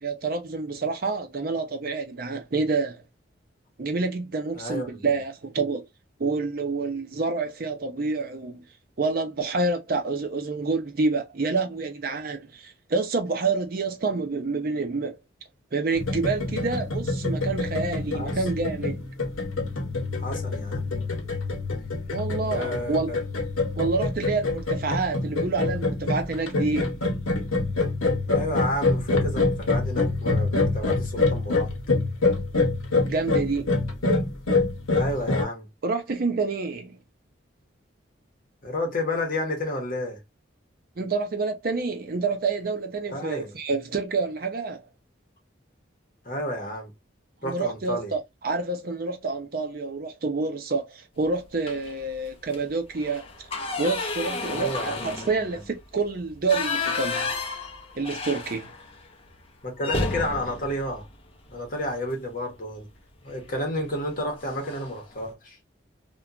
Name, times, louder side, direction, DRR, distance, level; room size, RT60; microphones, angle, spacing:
voice 1, 0.0-3.0 3.8-5.8 6.2-8.6 9.0-15.2 15.7-19.1 22.1-23.1 23.8-27.0 33.0-33.7 35.8-37.0 41.0-44.8 47.4-53.3 53.8-57.3 58.0-58.7, right 3 dB, 45° right, 0.5 m, -28 dB
voice 2, 4.5-5.1 18.1-18.4 20.2-20.9 22.5-23.2 28.3-31.7 34.9-35.7 38.6-40.2 43.1-43.5 46.2-46.9 47.4-48.2 54.5-55.6 59.6-61.1 61.5-62.9 63.2-65.6, left 1 dB, 45° left, 0.9 m, -31 dB
sound 1, 15.9-35.4, left 3 dB, 85° left, 0.8 m, -26 dB
sound 2, 51.6-52.0 52.4-52.6 52.9-59.0 59.3-59.4 59.8-61.9 63.3-63.6 63.9-64.1 64.4-65.0, left 3 dB, 30° left, 0.4 m, -32 dB
2.8 x 2.2 x 2.4 m
head